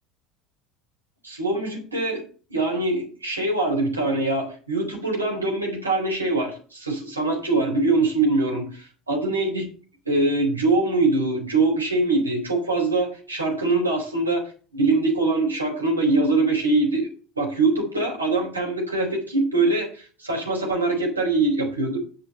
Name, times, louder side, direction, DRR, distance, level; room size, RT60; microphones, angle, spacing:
voice 1, 1.2-2.2 2.5-9.7 10.1-17.1 17.4-22.0, right 2 dB, 90° right, -1 dB, 3.9 m, -23 dB
8.3 x 6.2 x 7.8 m, 0.39 s
figure-of-eight pair, 70°, 0 cm